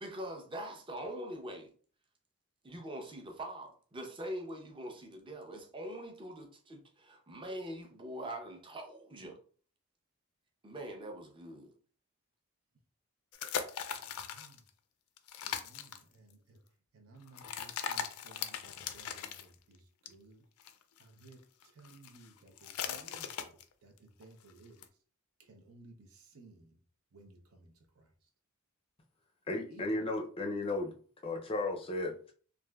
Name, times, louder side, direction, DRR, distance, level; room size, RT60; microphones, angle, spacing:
voice 1, 0.0-1.7 2.6-9.4 10.6-11.7, right 1 dB, 25° right, 0.6 m, -43 dB
sound 1, 13.3-14.7 15.2-16.0 17.3-19.4 20.1-20.2 20.6-21.3 21.6-23.7 24.0-24.2 24.5-24.6 24.8-24.9, left 8 dB, 85° left, 0.4 m, -39 dB
voice 2, 14.0-14.6 15.4-16.6 16.9-20.4 21.0-24.9 25.4-26.8 27.1-28.1 29.7-29.8, right 2 dB, 80° right, 0.6 m, -58 dB
voice 3, 29.5-30.9 31.2-32.3, left 2 dB, 25° left, 0.4 m, -34 dB
3.2 x 2.4 x 2.3 m
head